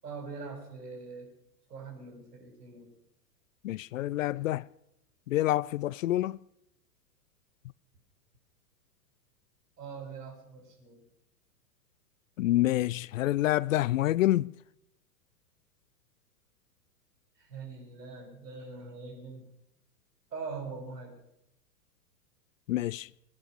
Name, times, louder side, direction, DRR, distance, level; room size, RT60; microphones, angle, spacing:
voice 1, 0.0-1.3 1.7-2.9 9.8-11.0 17.4-19.5 20.3-21.2, right 4 dB, 75° right, 7.2 m, -42 dB
voice 2, 3.6-4.7 5.3-6.4 12.4-14.5 22.7-23.1, left 15 dB, 55° left, 0.5 m, -27 dB
22.0 x 9.6 x 6.7 m
figure-of-eight pair, 105°, 48 cm